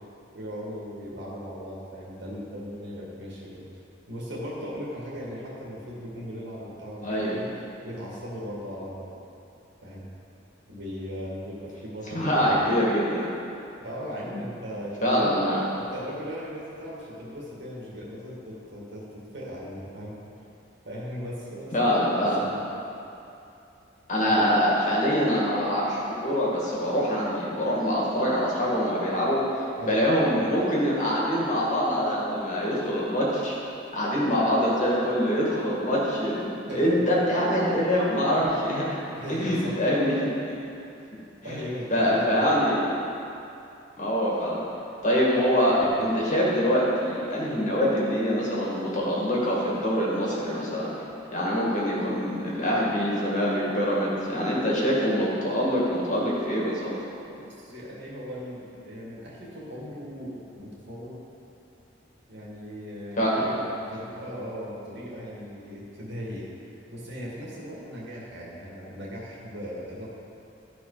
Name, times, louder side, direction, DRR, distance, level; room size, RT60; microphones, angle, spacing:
voice 1, 0.3-3.6 4.1-7.5 7.8-9.1 9.8-10.1 10.7-12.5 13.8-15.3 15.7-20.2 20.8-22.6 24.2-24.5 29.8-30.0 36.7-37.0 39.1-39.8 41.4-42.6 57.4-61.1 62.3-70.1, equal, 65° right, -5 dB, 2.2 m, -38 dB
voice 2, 7.0-7.4 12.1-13.3 15.0-15.6 21.7-22.4 24.1-29.4 29.9-33.6 33.9-38.9 39.3-40.3 41.5-41.6 41.9-42.7 44.0-44.6 45.0-50.9 51.3-56.9 63.2-63.4, equal, 40° left, -5 dB, 2.0 m, -24 dB
12.5 x 5.1 x 5.0 m, 2.8 s
head